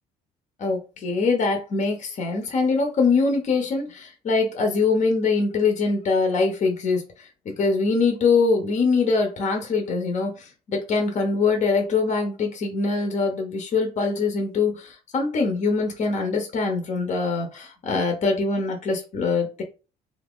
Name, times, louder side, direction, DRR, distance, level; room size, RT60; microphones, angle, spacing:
voice 1, 0.6-19.6, left 4 dB, 45° left, 0.8 m, -23 dB
2.8 x 2.5 x 3.6 m
cardioid pair, 110°, 17 cm